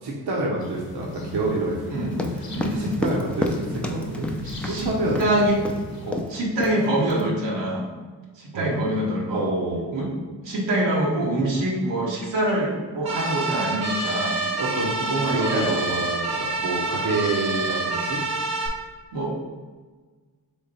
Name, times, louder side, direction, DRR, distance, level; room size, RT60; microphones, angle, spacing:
voice 1, 0.0-2.3 2.6-5.2 6.0-6.3 8.5-8.8 9.3-9.9 14.6-18.2, right 2 dB, 65° right, -3 dB, 0.9 m, -28 dB
sound 1, 0.6-6.1, left 2 dB, 55° left, 0.9 m, -35 dB
sound 2, 2.1-4.8 5.1-5.3 5.6-5.8 6.1-6.3 6.6-7.2, left 1 dB, 5° left, 0.5 m, -29 dB
voice 2, 2.5-3.0 4.4-4.9 5.2-5.6 6.3-7.9 8.4-9.5 9.9-10.1 10.4-14.4 14.8-15.7 19.1-19.3, right 1 dB, 85° right, -4 dB, 1.1 m, -25 dB
sound 3, 13.1-18.7, right 3 dB, 40° right, 0.9 m, -27 dB
3.6 x 3.2 x 4.1 m, 1.4 s
supercardioid pair, 45°, 42 cm